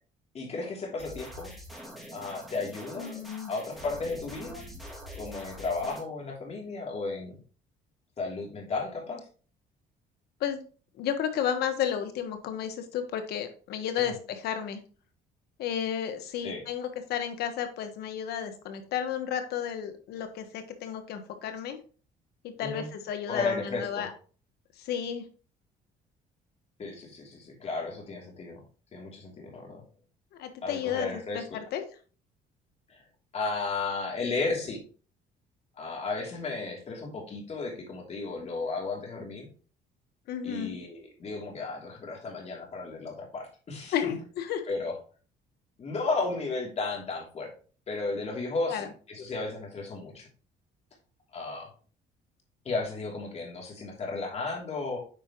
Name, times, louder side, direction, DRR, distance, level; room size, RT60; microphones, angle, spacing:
voice 1, 0.3-1.6 2.1-3.2 3.5-4.7 5.2-7.4 8.2-9.2 14.0-14.2 16.4-16.6 22.6-22.9 23.3-24.1 26.8-28.6 28.9-29.8 30.6-31.6 32.9-33.0 33.3-34.8 35.8-39.5 40.4-44.0 44.7-45.0 45.8-47.5 47.9-50.3 51.3-51.7 52.6-55.0, left 3 dB, 40° left, -1 dB, 3.0 m, -34 dB
sound 1, 1.0-6.0, equal, ahead, 3.4 m, -44 dB
voice 2, 3.0-3.5 10.4-10.6 11.0-14.8 15.6-21.8 22.4-24.1 24.8-25.2 30.4-31.1 31.3-31.8 40.3-40.7 43.9-44.7 48.7-48.9, left 9 dB, 75° left, 7 dB, 1.4 m, -32 dB
9.0 x 4.9 x 3.0 m, 0.39 s
cardioid pair, 110°, 17 cm